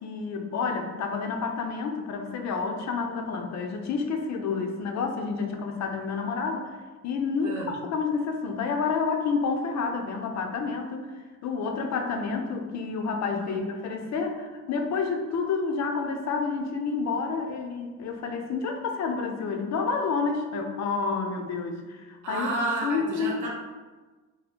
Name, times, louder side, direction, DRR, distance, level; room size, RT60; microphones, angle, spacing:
voice 1, 0.0-6.8 7.0-11.1 11.4-22.5 22.8-23.4, left 4 dB, 65° left, 4 dB, 0.5 m, -29 dB
voice 2, 22.2-23.5, right 2 dB, 75° right, -2 dB, 1.0 m, -31 dB
2.7 x 2.7 x 4.2 m, 1.3 s
cardioid pair, 150°, 30 cm